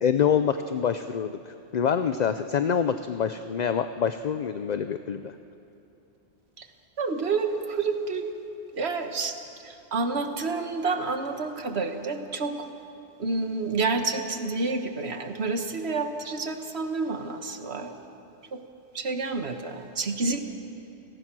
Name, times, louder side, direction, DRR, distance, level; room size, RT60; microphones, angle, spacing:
voice 1, 0.0-1.4 1.7-5.3, left 7 dB, 50° left, 10 dB, 0.6 m, -26 dB
voice 2, 7.0-8.3 8.8-9.3 9.6-12.6 13.2-17.9 18.5-18.6 18.9-20.4, right 4 dB, 70° right, 6 dB, 1.7 m, -29 dB
29.5 x 18.0 x 6.2 m, 2.8 s
omnidirectional pair, 1.1 m